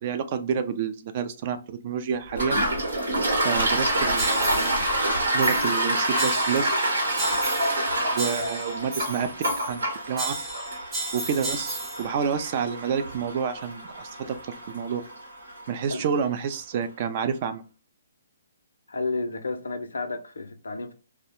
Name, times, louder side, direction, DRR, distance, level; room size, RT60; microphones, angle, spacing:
voice 1, 0.0-2.6 3.4-4.8 5.3-6.8 8.1-9.3 9.7-9.8 10.1-10.3 11.1-14.3 14.7-15.0 15.7-17.6, right 7 dB, 40° right, 0.3 m, -28 dB
Toilet flush, 2.3-15.7, right 1 dB, 90° right, 1.0 m, -27 dB
sound 1, 4.2-4.8 5.4-5.8 6.2-6.8 7.2-7.8 8.2-9.8 10.2-12.1, right 2 dB, 20° right, 0.8 m, -34 dB
voice 2, 18.9-20.9, left 3 dB, 85° left, 0.5 m, -31 dB
2.3 x 2.0 x 2.9 m
hypercardioid pair, 145°, 0 cm